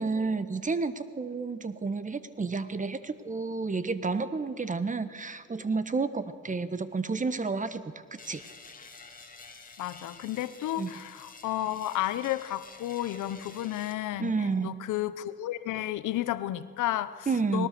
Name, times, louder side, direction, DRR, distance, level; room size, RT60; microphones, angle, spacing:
voice 1, 0.0-7.8 8.1-8.4 10.8-11.0 14.2-14.8 17.3-17.7, right 4 dB, 25° right, 13 dB, 1.2 m, -30 dB
sound 1, 8.2-13.9, left 4 dB, 25° left, 2.6 m, -50 dB
voice 2, 9.8-17.3 17.5-17.7, left 13 dB, 85° left, 14 dB, 0.9 m, -32 dB
20.5 x 19.0 x 6.8 m, 2.3 s
cardioid pair, 90°, 30 cm